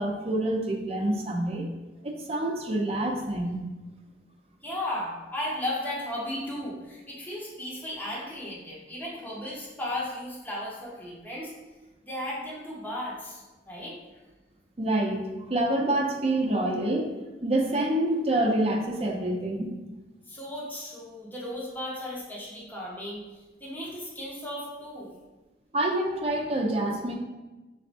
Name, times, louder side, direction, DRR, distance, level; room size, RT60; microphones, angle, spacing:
voice 1, 0.0-1.7 2.0-3.6 14.8-17.1 17.4-19.7 25.7-27.1, right 1 dB, 35° right, 1 dB, 0.6 m, -27 dB
voice 2, 4.6-11.5 12.1-14.0 20.3-23.2 23.6-25.1, left 1 dB, 10° left, -5 dB, 0.9 m, -35 dB
4.7 x 4.1 x 2.6 m, 1.1 s
head